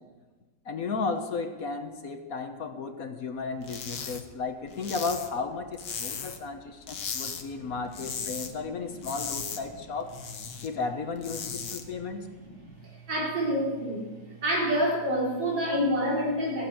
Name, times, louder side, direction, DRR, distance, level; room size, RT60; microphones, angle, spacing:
voice 1, 0.6-10.1 10.6-12.3, left 4 dB, 55° left, 7 dB, 1.4 m, -34 dB
sound 1, 3.6-4.2 4.5-6.5 6.8-7.4 7.7-8.5 8.8-10.7 11.0-11.8, left 6 dB, 80° left, 2.0 m, -36 dB
voice 2, 12.4-14.1 14.4-16.7, equal, 75° right, -3 dB, 4.6 m, -28 dB
14.5 x 9.3 x 8.7 m, 1.2 s
omnidirectional pair, 1.9 m